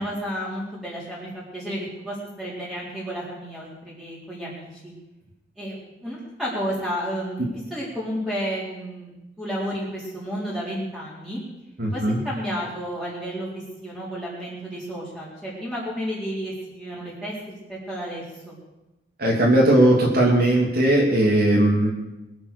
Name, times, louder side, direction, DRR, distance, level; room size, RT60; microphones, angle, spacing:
voice 1, 0.0-4.9 5.6-9.1 9.4-11.4 11.9-18.5, equal, 5° right, -8 dB, 4.3 m, -32 dB
voice 2, 11.8-12.2 19.2-21.9, right 1 dB, 55° right, -2 dB, 2.9 m, -18 dB
21.5 x 8.2 x 7.0 m, 0.98 s
head